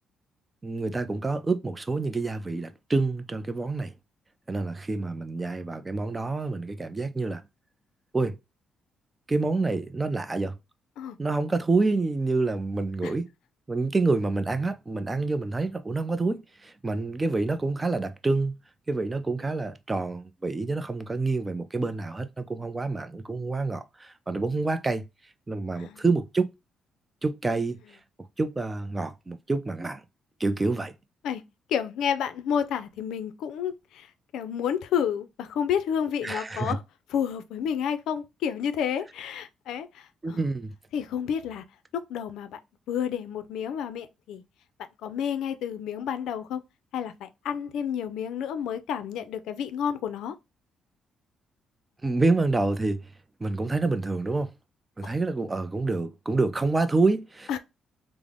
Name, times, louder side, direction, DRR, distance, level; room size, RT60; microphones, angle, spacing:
voice 1, 0.6-3.9 4.5-7.4 8.1-8.4 9.3-10.6 11.2-13.3 13.7-18.5 18.9-25.1 25.5-26.5 27.2-27.8 28.4-30.0 30.4-30.9 36.2-36.8 40.2-40.7 52.0-53.1 53.4-54.5 55.0-57.6, right 3 dB, 20° right, 0.4 m, -27 dB
voice 2, 31.7-34.1 34.3-36.8 37.1-40.4 40.9-41.6 41.9-42.6 42.9-44.4 45.0-46.6 46.9-50.3 55.0-55.1 57.5-57.6, left 8 dB, 85° left, 0.4 m, -30 dB
3.4 x 2.0 x 3.5 m
cardioid pair, 90°, 0 cm